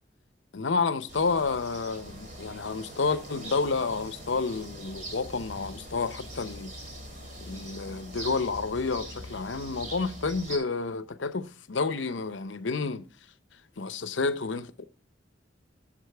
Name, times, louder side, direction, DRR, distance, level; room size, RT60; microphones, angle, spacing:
voice 1, 0.5-6.7 7.4-13.1 13.8-14.8, left 4 dB, 70° left, 0.7 m, -30 dB
sound 1, 1.1-10.6, right 1 dB, 40° right, 2.8 m, -42 dB
11.5 x 7.3 x 3.4 m
head